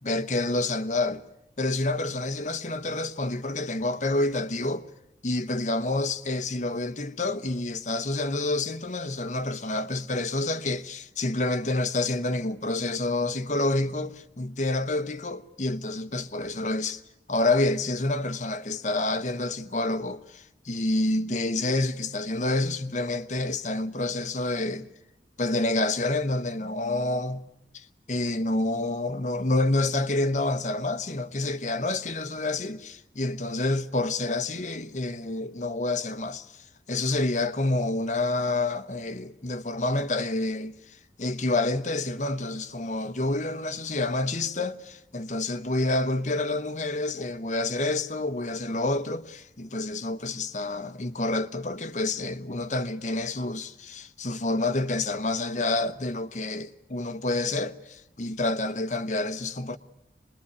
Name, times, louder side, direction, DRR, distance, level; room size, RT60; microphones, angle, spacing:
voice 1, 0.0-1.2 1.6-4.9 5.2-17.0 17.3-24.9 25.4-27.5 27.7-59.8, left 2 dB, 40° left, 1.0 m, -28 dB
24.5 x 21.5 x 9.7 m
head